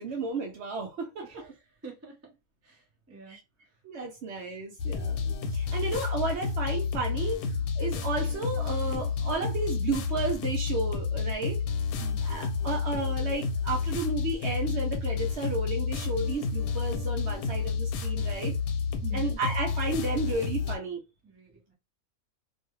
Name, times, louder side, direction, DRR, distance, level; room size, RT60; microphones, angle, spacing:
voice 1, 0.0-1.5 3.3-3.4 3.8-11.6 12.2-18.5 19.1-21.0, right 3 dB, 65° right, 0.7 m, -33 dB
voice 2, 1.8-2.2 2.6-3.4 12.0-12.2 19.0-19.2 21.2-21.7, right 5 dB, 15° right, 0.5 m, -46 dB
sound 1, 4.8-20.8, left 5 dB, 85° left, 1.1 m, -30 dB
2.7 x 2.2 x 3.0 m
omnidirectional pair, 1.5 m